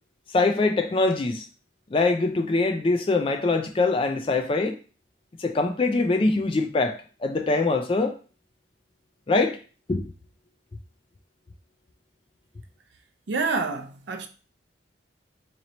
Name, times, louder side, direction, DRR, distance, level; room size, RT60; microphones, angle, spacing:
voice 1, 0.3-1.5 1.9-4.8 5.4-8.1 9.3-9.6 9.9-10.1, left 3 dB, 30° left, 0.3 m, -23 dB
voice 2, 13.3-14.3, right 4 dB, 65° right, 0.5 m, -27 dB
2.9 x 2.9 x 4.0 m
head